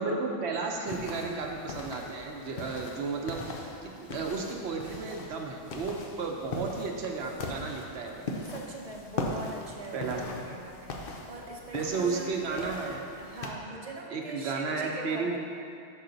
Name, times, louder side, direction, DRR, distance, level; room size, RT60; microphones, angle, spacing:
voice 1, 0.0-8.3 9.9-10.5 11.7-13.0 14.1-15.4, right 4 dB, 85° right, 1 dB, 1.0 m, -33 dB
sound 1, 0.9-13.5, left 2 dB, 60° left, 0.8 m, -40 dB
voice 2, 8.4-12.9 13.1-15.4, right 2 dB, 40° right, -1 dB, 0.8 m, -42 dB
6.3 x 5.6 x 3.9 m, 2.5 s
omnidirectional pair, 1.1 m